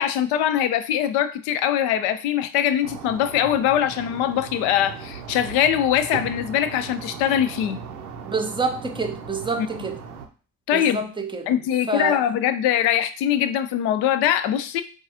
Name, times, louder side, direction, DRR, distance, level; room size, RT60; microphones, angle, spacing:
voice 1, 0.0-7.8 9.6-9.7 10.7-11.0 11.5-14.8, left 10 dB, 60° left, 11 dB, 0.5 m, -22 dB
sound 1, 2.8-10.3, right 6 dB, 85° right, 0.6 m, -37 dB
voice 2, 8.2-10.0 10.7-11.5 11.9-12.2, right 3 dB, 10° right, 5 dB, 0.6 m, -27 dB
4.5 x 2.4 x 2.8 m, 0.37 s
figure-of-eight pair, 45°, 45 cm